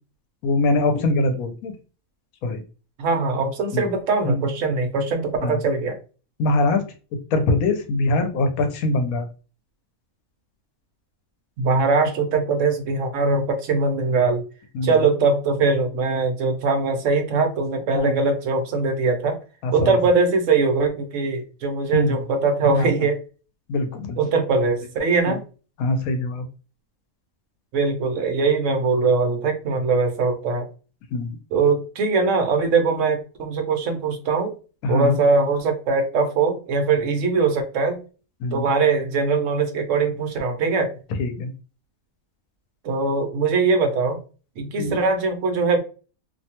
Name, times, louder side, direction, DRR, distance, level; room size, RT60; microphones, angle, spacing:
voice 1, 0.4-1.7 2.4-2.6 3.7-3.8 4.2-4.4 5.4-5.6 6.4-6.8 7.3-9.3 14.7-15.0 17.9-18.1 19.6-19.9 21.9-22.2 22.7-22.9 23.7-24.2 25.3-25.4 25.8-26.4 31.1-31.4 34.8-35.2 38.4-38.7 41.2-41.5 44.8-45.0, left 2 dB, 80° left, 1.1 m, -22 dB
voice 2, 3.0-6.0 11.6-14.4 14.8-19.4 19.7-23.2 24.2-25.4 27.7-30.7 31.5-34.5 34.9-38.0 38.5-40.9 42.8-44.2 44.6-45.8, right 4 dB, 65° right, 1.0 m, -21 dB
2.7 x 2.2 x 2.8 m
omnidirectional pair, 1.5 m